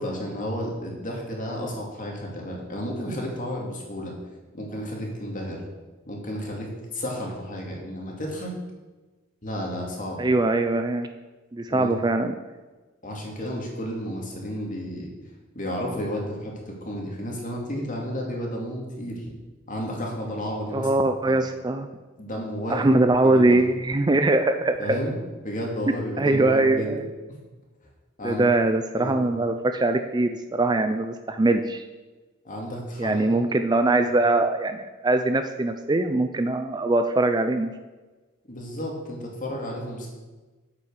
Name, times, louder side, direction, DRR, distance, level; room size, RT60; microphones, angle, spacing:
voice 1, 0.0-4.1 4.5-5.6 6.1-8.5 9.4-10.2 11.7-11.9 13.0-15.1 15.5-19.3 19.7-20.9 21.3-21.4 22.2-22.9 23.2-23.6 24.8-25.1 25.4-27.0 28.2-28.5 29.0-29.3 32.4-33.3 38.5-40.1, equal, 40° left, -1 dB, 2.6 m, -32 dB
voice 2, 10.2-11.1 11.5-12.3 20.7-21.9 22.7-25.0 26.2-27.1 28.2-31.8 33.0-37.7, right 2 dB, 20° right, 7 dB, 0.4 m, -22 dB
8.9 x 8.1 x 6.5 m, 1.2 s
head